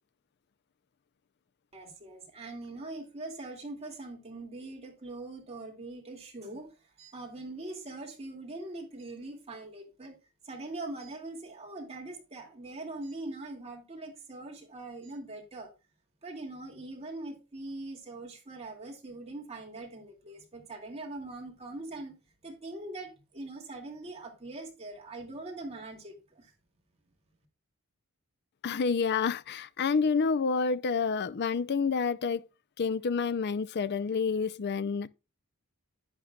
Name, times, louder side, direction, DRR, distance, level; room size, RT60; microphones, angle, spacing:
voice 1, 1.7-6.7 7.0-10.1 10.4-15.7 16.2-22.1 22.4-26.5, right 2 dB, 30° right, 2.4 m, -42 dB
voice 2, 28.6-32.4 32.8-35.1, left 5 dB, 50° left, 0.5 m, -28 dB
10.5 x 9.0 x 2.3 m
head